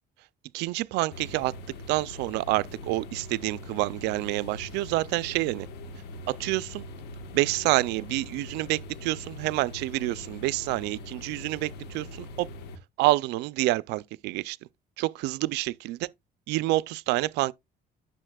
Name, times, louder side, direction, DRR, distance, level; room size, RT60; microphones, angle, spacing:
voice 1, 0.5-1.5 1.9-5.7 6.3-6.9 7.3-12.5 13.0-14.6 15.0-16.0 16.5-17.5, right 19 dB, 90° right, 0.4 m, -28 dB
Computer Room, 1.1-12.8, left 1 dB, 85° left, 1.3 m, -42 dB
9.8 x 6.5 x 2.3 m
cardioid pair, 110°, 17 cm